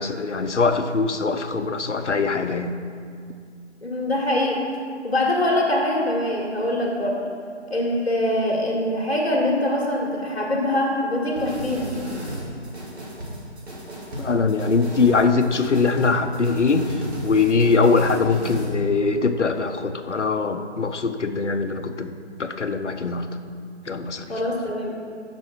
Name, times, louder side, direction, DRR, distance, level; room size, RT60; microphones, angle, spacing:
voice 1, 0.0-2.8 14.2-16.9 17.2-23.3 23.9-24.3, left 4 dB, 80° left, 9 dB, 0.7 m, -22 dB
voice 2, 3.8-4.6 5.0-7.2 7.7-11.9 24.3-25.0, left 1 dB, 60° left, -2 dB, 1.6 m, -23 dB
sound 1, 11.4-18.7, equal, 65° right, 2.3 m, -34 dB
6.9 x 6.1 x 6.1 m, 2.2 s
figure-of-eight pair, 160°, 35 cm